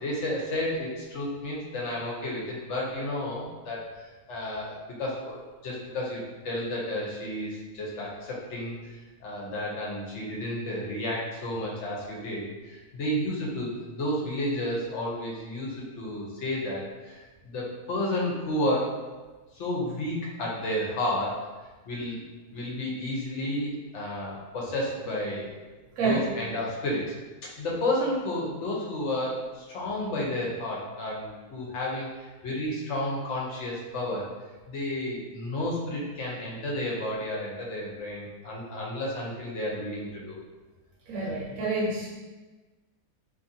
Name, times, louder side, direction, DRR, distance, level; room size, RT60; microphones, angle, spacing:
voice 1, 0.0-3.8 4.3-17.1 17.4-19.0 19.6-21.5 21.9-22.2 22.5-25.5 26.0-27.1 27.6-32.1 32.4-34.3 34.7-40.4 41.2-41.3, left 1 dB, 60° left, -4 dB, 0.9 m, -31 dB
voice 2, 26.0-26.3 41.1-42.1, right 3 dB, 70° right, -6 dB, 1.1 m, -28 dB
2.7 x 2.6 x 2.6 m, 1.2 s
omnidirectional pair, 1.6 m